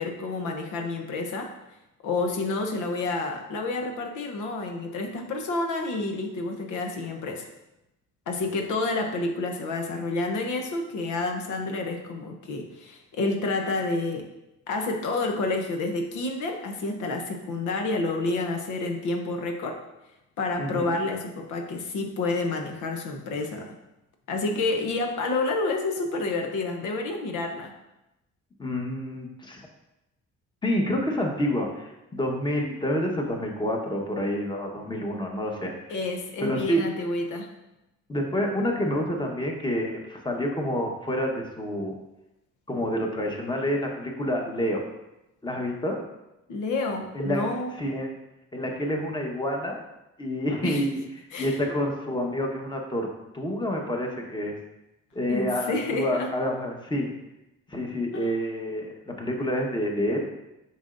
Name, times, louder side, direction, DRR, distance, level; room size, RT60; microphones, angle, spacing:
voice 1, 0.0-1.5 2.0-7.5 8.3-14.3 14.7-19.8 20.4-23.7 24.3-27.7 35.9-37.5 46.5-47.7 50.6-50.8 51.3-51.6 55.3-56.3 58.1-58.3, left 3 dB, 80° left, 3 dB, 0.9 m, -29 dB
voice 2, 20.6-21.0 28.6-29.6 30.6-35.9 36.4-36.8 38.1-41.9 42.7-44.8 45.4-46.0 47.1-47.5 47.8-48.1 48.5-49.8 50.2-51.0 51.4-53.1 53.3-54.6 55.1-57.1 57.7-60.3, equal, 15° left, 1 dB, 1.2 m, -28 dB
7.1 x 5.7 x 2.6 m, 0.94 s
cardioid pair, 90°, 30 cm